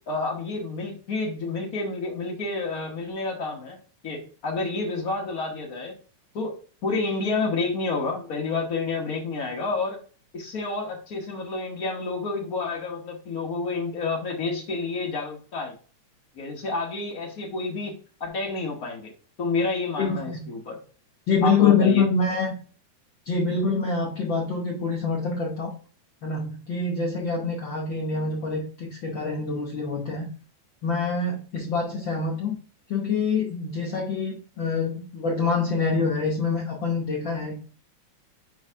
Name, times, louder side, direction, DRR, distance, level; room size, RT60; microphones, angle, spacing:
voice 1, 0.1-3.8 4.0-5.9 6.3-6.5 6.8-10.0 10.3-15.7 16.3-17.9 18.2-19.1 19.4-20.8 21.4-22.1, left 3 dB, 90° left, 0 dB, 0.7 m, -29 dB
voice 2, 20.0-20.5 21.3-22.5 23.3-25.7 26.2-30.3 30.8-32.6 32.9-37.5, left 4 dB, 65° left, -1 dB, 1.1 m, -25 dB
5.7 x 4.7 x 3.5 m, 0.40 s
omnidirectional pair, 3.5 m